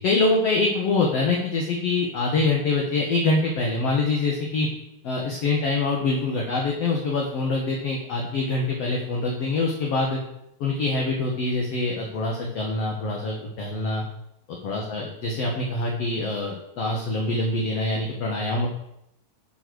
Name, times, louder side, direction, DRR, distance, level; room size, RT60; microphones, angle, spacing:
voice 1, 0.0-4.7 5.0-10.2 10.6-14.0 14.5-18.7, left 3 dB, 55° left, -1 dB, 1.9 m, -25 dB
11.5 x 5.0 x 6.2 m, 0.80 s
omnidirectional pair, 4.2 m